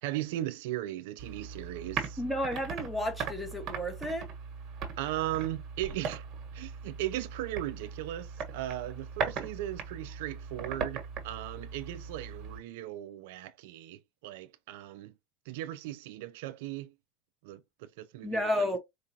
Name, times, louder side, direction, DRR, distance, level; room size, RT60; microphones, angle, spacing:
voice 1, 0.0-2.2 5.0-6.3 6.5-15.1 15.5-16.9 17.4-18.7, right 14 dB, 80° right, 0.4 m, -37 dB
sound 1, 1.2-12.6, right 6 dB, 45° right, 1.3 m, -39 dB
voice 2, 2.2-4.3 18.2-18.8, left 1 dB, ahead, 1.3 m, -32 dB
4.5 x 2.5 x 2.7 m
supercardioid pair, 120°, 0 cm